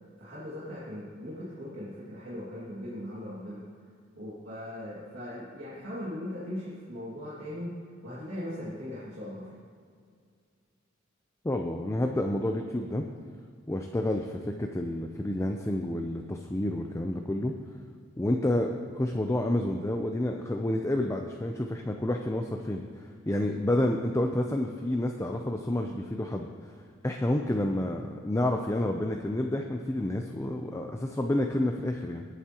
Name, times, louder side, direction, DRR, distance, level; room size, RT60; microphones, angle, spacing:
voice 1, 0.2-3.6 4.2-7.7 8.0-9.5, left 1 dB, 60° right, -9 dB, 2.4 m, -39 dB
voice 2, 11.4-13.0 13.7-17.5 18.2-26.7 27.0-32.3, left 1 dB, 15° left, 3 dB, 0.5 m, -29 dB
19.5 x 8.2 x 3.0 m, 2.1 s
head